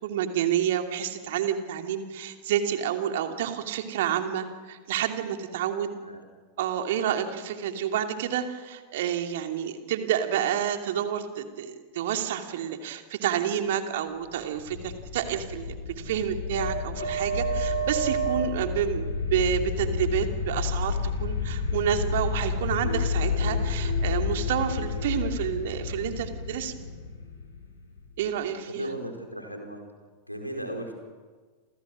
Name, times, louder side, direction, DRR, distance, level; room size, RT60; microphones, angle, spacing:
voice 1, 0.0-5.9 6.6-26.7 28.2-28.9, right 9 dB, 55° right, 5 dB, 2.7 m, -29 dB
sound 1, 14.5-28.2, left 3 dB, 70° left, 6.9 m, -30 dB
voice 2, 28.7-29.8 30.3-30.9, right 1 dB, 90° left, 3 dB, 4.7 m, -36 dB
29.5 x 27.5 x 6.4 m, 1.4 s
figure-of-eight pair, 90°, 0 cm